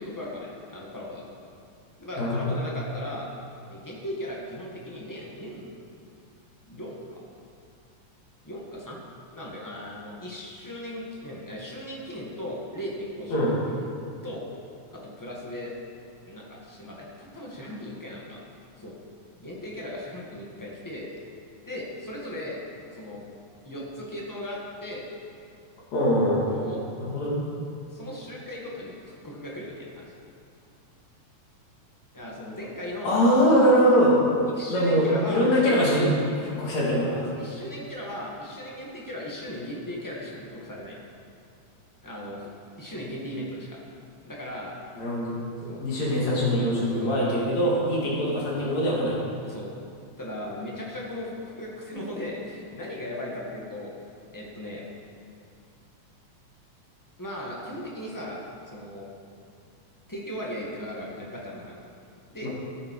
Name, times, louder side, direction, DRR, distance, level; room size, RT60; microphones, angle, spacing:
voice 1, 0.0-1.3 2.0-3.3 3.7-5.7 6.7-7.2 8.4-9.0 9.3-13.7 14.2-14.4 14.9-15.7 16.3-18.4 18.8-18.9 19.4-21.1 21.6-22.6 22.9-23.2 23.6-25.0 26.5-26.8 27.9-30.0 32.1-33.2 34.5-35.5 37.4-41.0 42.0-42.5 42.8-43.8 44.2-44.7 45.7-45.8 47.0-47.2 49.4-49.7 50.2-53.9 54.3-54.8 57.2-58.4 58.6-59.1 60.1-61.8 62.3-62.5, left 1 dB, 10° left, -4 dB, 1.4 m, -37 dB
voice 2, 2.2-2.6 13.3-13.5 25.9-26.5 27.0-27.5 33.0-34.2 34.7-36.1 36.4-37.3 45.0-45.4 45.6-49.2 62.4-62.5, equal, 65° left, -6 dB, 3.9 m, -22 dB
14.5 x 10.5 x 4.9 m, 2.4 s
omnidirectional pair, 3.4 m